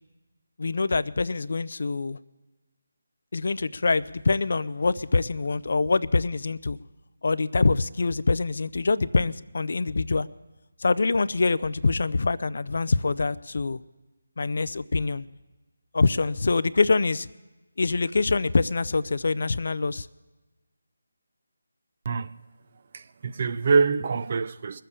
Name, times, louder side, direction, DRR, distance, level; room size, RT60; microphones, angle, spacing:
voice 1, 0.6-2.2 3.3-6.8 7.2-10.3 10.8-13.8 14.4-15.3 15.9-17.3 17.8-20.1, left 3 dB, 60° left, 0.4 m, -25 dB
voice 2, 22.9-24.8, right 4 dB, 40° right, 0.5 m, -25 dB
21.5 x 7.5 x 6.8 m
figure-of-eight pair, 160°, 0 cm